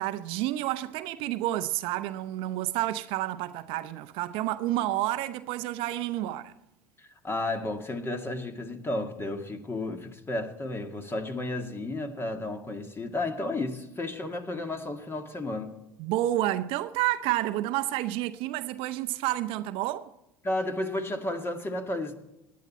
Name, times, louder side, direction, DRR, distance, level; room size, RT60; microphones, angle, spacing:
voice 1, 0.0-6.5 16.0-20.1, right 15 dB, 60° right, 0.7 m, -30 dB
voice 2, 7.0-15.7 20.4-22.1, left 2 dB, 20° left, 2.1 m, -32 dB
18.0 x 10.5 x 4.3 m
hypercardioid pair, 70°, 10 cm